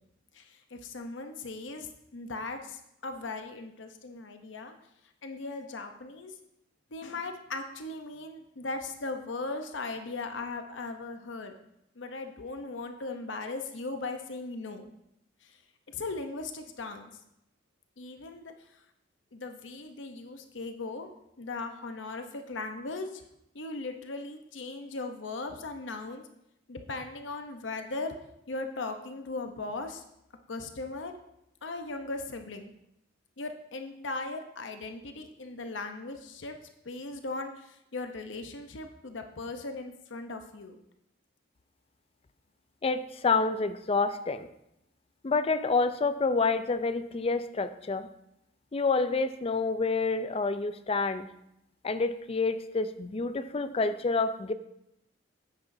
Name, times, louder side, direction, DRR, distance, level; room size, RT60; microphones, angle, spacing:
voice 1, 0.3-4.8 5.2-6.3 6.9-11.5 12.0-14.9 15.4-15.6 15.9-17.1 18.0-18.8 19.3-21.1 21.4-23.2 23.5-26.2 26.7-28.2 28.5-30.0 30.5-31.2 31.6-32.7 33.4-36.6 36.8-40.8, left 3 dB, 90° left, 6 dB, 0.8 m, -38 dB
voice 2, 42.8-44.5 45.2-48.1 48.7-51.3 51.8-54.5, left 4 dB, 30° left, 11 dB, 0.5 m, -28 dB
9.7 x 8.9 x 2.7 m, 0.81 s
head